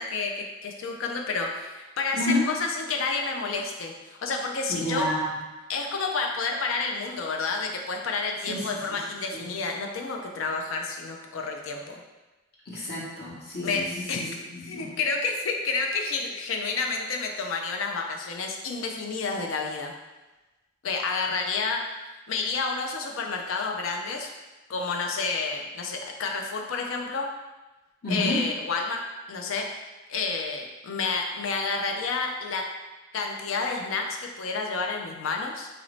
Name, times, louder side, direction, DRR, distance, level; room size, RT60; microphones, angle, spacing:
voice 1, 0.0-5.1 5.7-12.0 13.6-13.8 14.1-14.2 14.6-19.9 20.8-24.3 24.7-27.3 28.1-29.0 29.3-29.7 30.1-32.6 33.1-35.7, left 4 dB, 80° left, 2 dB, 0.5 m, -30 dB
voice 2, 4.7-5.3 8.5-9.0 9.3-9.5 12.7-14.9 28.0-28.4, left 1 dB, 50° left, -6 dB, 1.0 m, -30 dB
2.9 x 2.6 x 3.1 m, 1.1 s
head